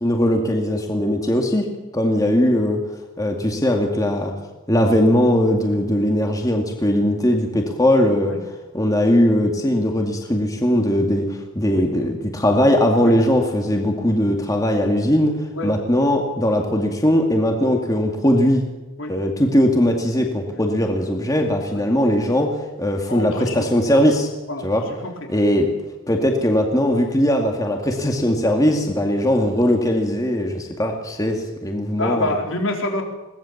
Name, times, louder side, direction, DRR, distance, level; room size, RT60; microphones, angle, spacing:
voice 1, 0.0-1.7 1.9-2.8 3.2-4.3 4.7-8.3 8.7-15.3 15.6-18.6 19.1-24.3 24.6-24.8 25.3-25.7 26.1-32.3, equal, 15° left, 2 dB, 2.3 m, -19 dB
voice 2, 23.1-23.7 24.5-25.3 32.0-33.1, left 2 dB, 70° left, 2 dB, 4.3 m, -27 dB
22.0 x 18.5 x 7.4 m, 1.1 s
head